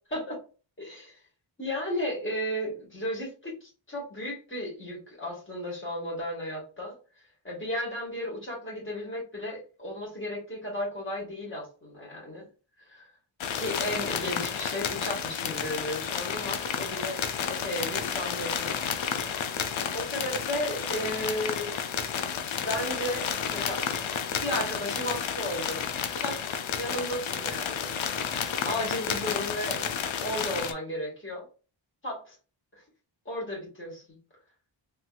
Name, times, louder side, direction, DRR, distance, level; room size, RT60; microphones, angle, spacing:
voice 1, 0.8-1.2 1.6-6.9 7.4-12.4 12.8-13.1 13.5-18.8 19.9-21.7 22.6-23.8 24.4-25.8 26.1-26.4 26.7-27.9 28.6-29.8 30.2-31.4 32.0-32.3 32.7-32.8 33.2-34.2, equal, 25° left, -3 dB, 1.7 m, -34 dB
sound 1, 13.4-30.7, left 7 dB, 75° left, 0.6 m, -31 dB
3.3 x 2.9 x 2.3 m, 0.36 s
wide cardioid pair, 120°, 48 cm